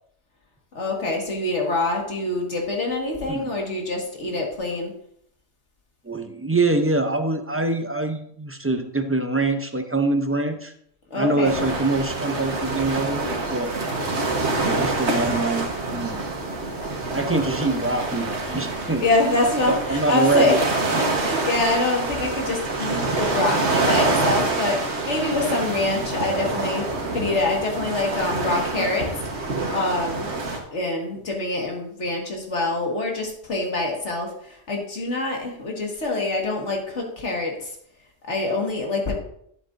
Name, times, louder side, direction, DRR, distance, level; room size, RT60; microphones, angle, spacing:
voice 1, 0.8-4.9 11.1-11.5 18.8-20.6 21.0-26.8 27.1-29.1 29.3-30.3 30.7-37.7 38.3-39.2, left 2 dB, 70° left, 0 dB, 2.1 m, -25 dB
voice 2, 6.1-10.7 11.1-13.2 13.5-13.7 14.7-16.2 17.1-19.0 19.7-20.6, right 2 dB, 20° right, 6 dB, 0.4 m, -24 dB
sound 1, 11.4-30.6, right 3 dB, 65° right, 1.6 m, -26 dB
11.5 x 7.8 x 2.6 m, 0.69 s
omnidirectional pair, 1.3 m